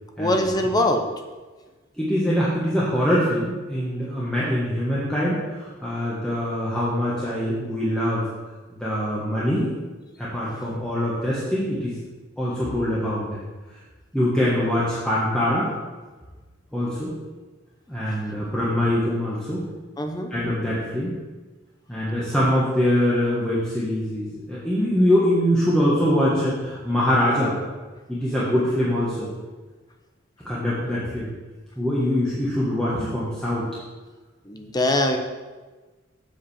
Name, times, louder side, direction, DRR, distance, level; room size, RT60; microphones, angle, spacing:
voice 1, 0.2-1.0 20.0-20.3 34.5-35.2, left 1 dB, 20° left, 4 dB, 0.8 m, -22 dB
voice 2, 2.0-8.2 8.8-9.7 10.2-12.0 12.4-13.4 14.1-15.7 16.7-17.1 17.9-19.7 20.3-21.2 21.9-27.6 28.1-29.3 30.4-31.3 31.8-33.7, equal, 5° left, -8 dB, 1.5 m, -23 dB
7.7 x 5.0 x 7.3 m, 1.3 s
head